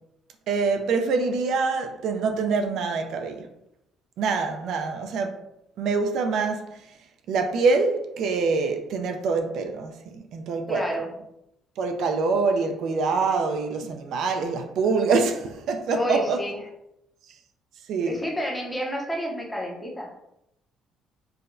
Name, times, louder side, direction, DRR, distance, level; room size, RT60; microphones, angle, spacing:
voice 1, 0.5-3.5 4.2-5.3 5.8-6.7 7.3-10.9 11.8-16.4 17.9-18.2, right 4 dB, 65° right, 0.3 m, -25 dB
voice 2, 10.7-11.1 15.9-16.6 18.0-20.1, equal, 10° left, 0.6 m, -29 dB
4.6 x 2.1 x 2.5 m
cardioid pair, 140°, 0 cm